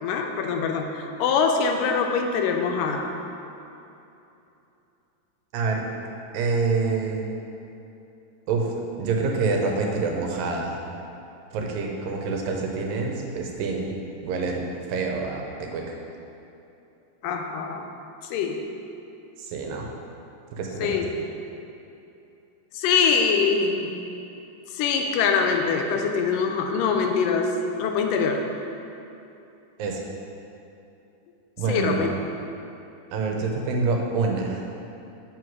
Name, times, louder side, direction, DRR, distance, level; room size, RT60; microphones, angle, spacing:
voice 1, 0.0-3.1 17.2-17.9 18.3-18.6 20.8-21.1 22.7-23.9 24.7-28.4 31.7-32.1, left 5 dB, 80° left, 3 dB, 2.2 m, -23 dB
voice 2, 6.3-7.3 8.5-8.7 9.0-10.8 11.5-13.9 14.2-14.6 14.9-16.0 19.4-19.9 20.5-21.0 29.8-30.0 31.6-32.0 33.1-34.6, right 4 dB, 85° right, 1 dB, 2.6 m, -26 dB
7.8 x 5.5 x 4.6 m, 2.8 s
omnidirectional pair, 4.0 m